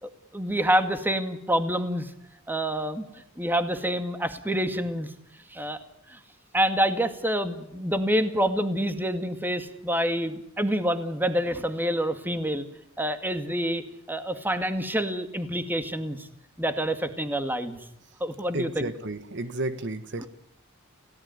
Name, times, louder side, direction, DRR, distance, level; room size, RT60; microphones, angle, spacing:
voice 1, 0.0-2.1 2.5-3.1 3.4-5.1 5.5-5.8 6.1-6.2 6.5-12.7 13.0-13.8 14.1-16.3 16.6-17.8 18.2-18.9 20.2-20.3, equal, 10° right, 8 dB, 2.0 m, -27 dB
voice 2, 18.5-20.3, right 2 dB, 55° right, 11 dB, 1.4 m, -32 dB
29.0 x 17.5 x 9.6 m, 0.81 s
head